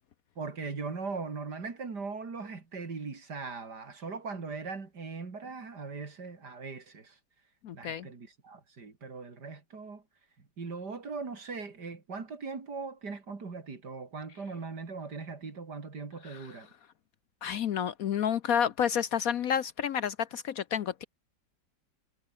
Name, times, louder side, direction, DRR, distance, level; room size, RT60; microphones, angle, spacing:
voice 1, 0.4-7.2 7.7-10.0 10.4-16.7, right 4 dB, 65° right, 3.6 m, -40 dB
voice 2, 7.6-8.1 16.2-16.5 17.4-21.0, left 8 dB, 65° left, 1.0 m, -30 dB
omnidirectional pair, 1.9 m